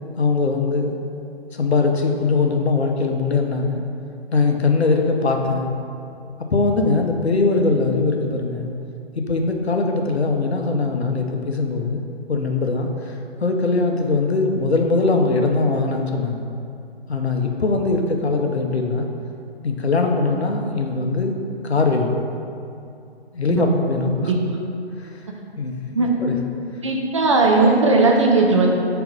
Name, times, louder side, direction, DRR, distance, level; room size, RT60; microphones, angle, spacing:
voice 1, 0.2-1.0 1.5-3.8 4.3-5.7 6.5-8.7 9.2-12.0 12.3-16.5 17.1-19.1 19.6-21.4 21.6-22.2 23.3-24.3 25.0-25.2 25.6-26.4, left 3 dB, 75° left, 3 dB, 0.8 m, -21 dB
voice 2, 26.8-28.7, right 3 dB, 30° right, 0 dB, 0.5 m, -17 dB
4.6 x 4.5 x 5.2 m, 2.6 s
figure-of-eight pair, 135°, 32 cm